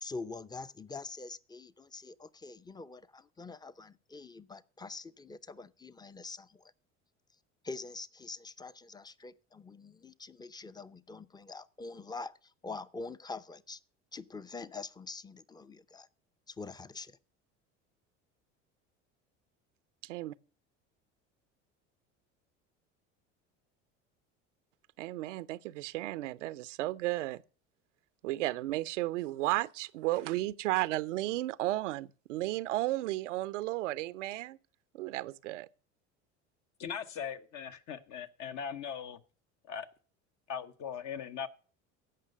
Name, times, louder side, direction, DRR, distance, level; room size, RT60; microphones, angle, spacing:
voice 1, 0.0-6.7 7.6-13.8 14.1-16.1 16.5-17.2, left 3 dB, 10° left, 0.6 m, -45 dB
voice 2, 20.0-20.3 25.0-27.4 28.2-34.6 34.9-35.7, right 17 dB, 85° right, 0.6 m, -33 dB
voice 3, 36.8-39.2 39.7-39.9 40.5-41.5, left 7 dB, 55° left, 1.1 m, -39 dB
15.5 x 5.7 x 6.6 m
hypercardioid pair, 75°, 36 cm